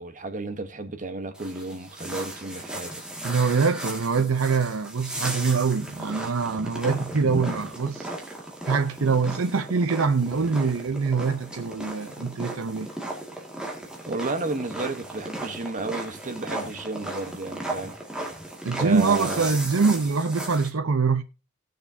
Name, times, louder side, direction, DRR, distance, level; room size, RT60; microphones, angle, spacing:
voice 1, 0.0-3.0 14.1-18.0 18.7-19.5, right 2 dB, 40° right, 1.1 m, -32 dB
sound 1, 1.3-20.7, right 1 dB, 5° right, 2.0 m, -36 dB
voice 2, 3.2-8.1 8.7-12.9 18.6-21.2, right 5 dB, 75° right, 0.7 m, -24 dB
18.5 x 6.6 x 2.7 m
head